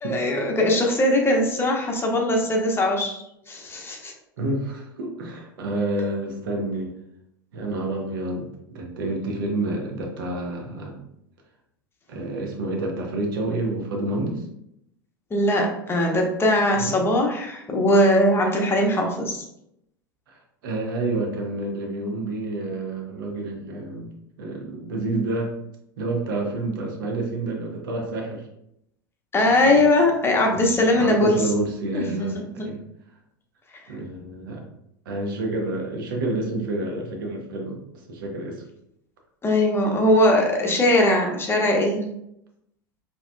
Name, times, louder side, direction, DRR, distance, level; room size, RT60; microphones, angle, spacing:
voice 1, 0.0-3.2 3.5-4.1 15.3-19.4 29.3-31.4 31.9-32.3 32.6-32.7 39.4-42.0, left 1 dB, 20° left, 0 dB, 1.0 m, -20 dB
voice 2, 4.4-6.9 7.5-11.0 12.1-14.5 16.8-17.0 20.3-24.1 24.4-25.5 26.0-28.5 29.6-29.9 30.5-32.8 33.9-34.6 35.0-38.6, right 2 dB, 70° right, 1 dB, 1.0 m, -29 dB
4.7 x 3.0 x 2.3 m, 0.77 s
figure-of-eight pair, 80°, 12 cm